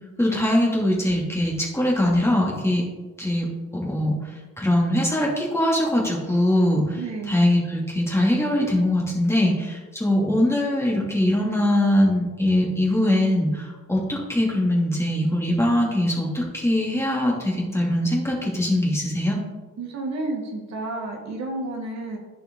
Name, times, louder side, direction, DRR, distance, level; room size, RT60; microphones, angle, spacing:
voice 1, 0.2-2.8 3.2-3.5 3.7-4.1 4.6-7.0 7.3-19.4, left 1 dB, 10° left, -4 dB, 2.5 m, -22 dB
voice 2, 7.0-7.4 19.8-22.2, right 2 dB, 65° right, 0 dB, 1.8 m, -31 dB
10.5 x 4.8 x 3.9 m, 1.2 s
cardioid pair, 90°, 30 cm